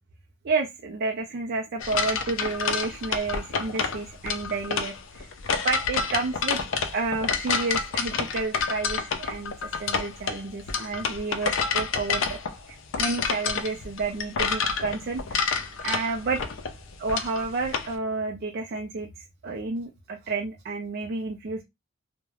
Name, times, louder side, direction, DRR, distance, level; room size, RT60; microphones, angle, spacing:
voice 1, 0.4-5.3 5.6-6.6 6.9-12.4 12.7-15.5 15.8-16.4 17.0-21.6, right 3 dB, 50° right, 1 dB, 0.4 m, -30 dB
sound 1, 1.8-17.9, left 5 dB, 65° left, 0.4 m, -28 dB
2.3 x 2.1 x 3.1 m, 0.21 s
head